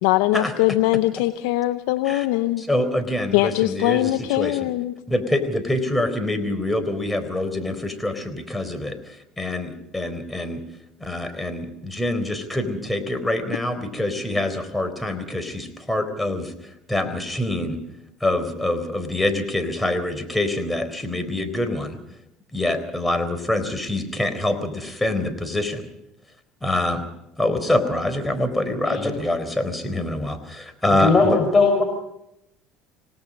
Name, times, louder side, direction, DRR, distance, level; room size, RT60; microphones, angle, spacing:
voice 1, 0.0-2.6 3.3-4.9, left 17 dB, 75° left, 11 dB, 0.8 m, -21 dB
voice 2, 2.6-4.1 4.4-4.6 5.1-9.0 9.4-10.6 11.0-16.5 16.9-17.8 18.2-22.0 22.5-25.8 26.6-27.0 27.4-31.4, left 1 dB, 10° left, 8 dB, 4.0 m, -25 dB
voice 3, 30.9-31.8, left 4 dB, 30° left, 3 dB, 5.1 m, -19 dB
27.0 x 18.5 x 5.3 m, 0.82 s
hypercardioid pair, 75°, 0 cm